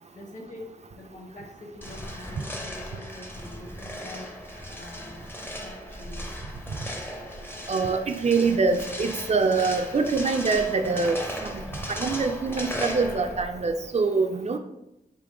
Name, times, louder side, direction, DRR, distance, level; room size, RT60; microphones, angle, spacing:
voice 1, 0.1-5.1 5.6-6.3, left 1 dB, 50° left, 0 dB, 1.2 m, -44 dB
sound 1, 1.8-13.7, left 1 dB, 15° left, 0.6 m, -37 dB
voice 2, 7.7-11.6 11.9-14.6, right 4 dB, 40° right, 6 dB, 0.4 m, -24 dB
3.7 x 2.9 x 4.7 m, 0.89 s
wide cardioid pair, 80°, 17 cm